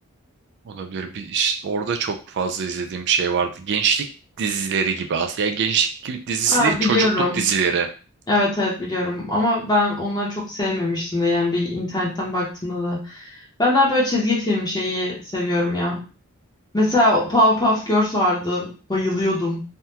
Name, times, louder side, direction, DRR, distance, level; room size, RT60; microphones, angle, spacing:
voice 1, 0.7-4.1 4.4-7.9, right 6 dB, 55° right, 6 dB, 0.4 m, -23 dB
voice 2, 6.5-7.4 8.3-16.0 16.7-19.6, left 1 dB, 20° left, -4 dB, 0.8 m, -21 dB
3.5 x 2.2 x 2.8 m, 0.35 s
head